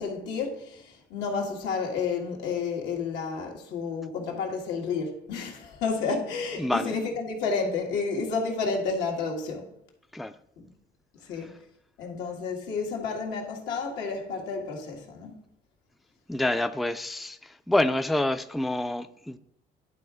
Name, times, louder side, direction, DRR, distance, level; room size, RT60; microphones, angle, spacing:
voice 1, 0.0-9.7 10.6-10.7 11.2-11.5 12.0-15.3, left 4 dB, 90° left, 1.8 m, -31 dB
voice 2, 6.6-6.9 10.1-10.3 16.3-17.4 17.7-19.4, left 1 dB, ahead, 0.3 m, -27 dB
11.0 x 3.8 x 4.8 m
cardioid pair, 110°, 17 cm